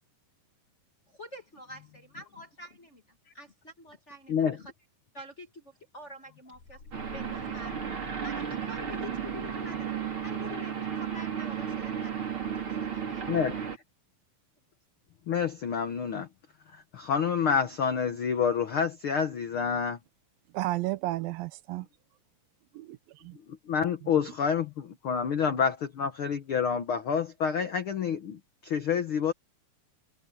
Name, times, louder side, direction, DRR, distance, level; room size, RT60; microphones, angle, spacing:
voice 1, 1.1-3.0 3.3-4.7 5.1-6.8 7.1-7.9 8.2-10.0 10.2-13.4, left 1 dB, 40° left, 1.0 m, -47 dB
sound 1, 6.5-8.9, left 3 dB, 60° left, 9.0 m, -51 dB
sound 2, 6.9-13.8, right 7 dB, 35° right, 3.8 m, -34 dB
voice 2, 13.3-13.6 15.3-16.3 16.7-20.0 23.7-29.3, left 7 dB, 85° left, 1.1 m, -28 dB
voice 3, 20.5-21.9 22.7-23.4, right 17 dB, 80° right, 2.4 m, -33 dB
omnidirectional pair, 4.2 m